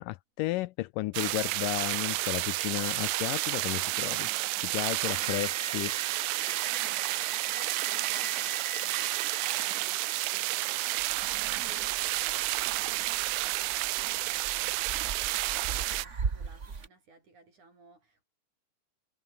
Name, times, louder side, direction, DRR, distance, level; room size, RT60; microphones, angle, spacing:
voice 1, 0.0-4.3 4.6-6.0, left 19 dB, 80° left, 2.1 m, -33 dB
sound 1, 1.1-16.1, right 19 dB, 85° right, 1.7 m, -31 dB
sound 2, 4.9-16.2, right 3 dB, 20° right, 4.3 m, -46 dB
voice 2, 6.6-18.2, right 3 dB, 55° right, 9.1 m, -56 dB
sound 3, 11.0-16.9, right 5 dB, 40° right, 1.0 m, -40 dB
omnidirectional pair, 4.1 m